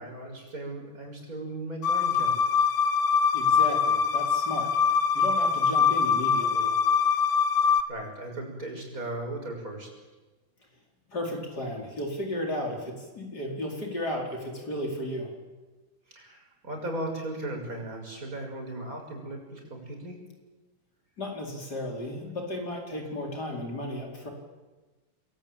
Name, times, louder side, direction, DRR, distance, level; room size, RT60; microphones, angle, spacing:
voice 1, 0.0-2.4 7.6-9.9 16.1-20.2, right 1 dB, 45° right, 2 dB, 6.8 m, -37 dB
sound 1, 1.8-7.8, left 6 dB, 85° left, 2.1 m, -23 dB
voice 2, 3.3-6.8 11.1-15.3 21.2-24.3, left 1 dB, 55° left, 1 dB, 5.1 m, -34 dB
28.0 x 21.0 x 8.9 m, 1.2 s
omnidirectional pair, 2.1 m